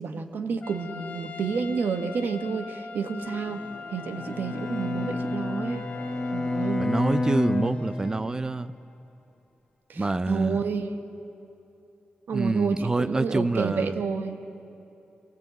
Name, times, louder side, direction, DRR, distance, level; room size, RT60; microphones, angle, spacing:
voice 1, 0.0-3.6 3.9-5.8 6.3-6.9 9.9-11.1 12.3-14.4, right 5 dB, 75° right, 7 dB, 1.2 m, -30 dB
Trumpet, 0.6-6.7, left 6 dB, 55° left, 1.0 m, -42 dB
Organ, 3.2-9.0, left 2 dB, 40° left, 2.4 m, -46 dB
Bowed string instrument, 4.1-8.5, left 2 dB, 15° left, 1.5 m, -29 dB
voice 2, 6.8-8.7 10.0-10.6 12.3-14.0, right 2 dB, 20° right, 14 dB, 0.5 m, -26 dB
25.0 x 19.5 x 8.2 m, 2.9 s
wide cardioid pair, 170°, 3 cm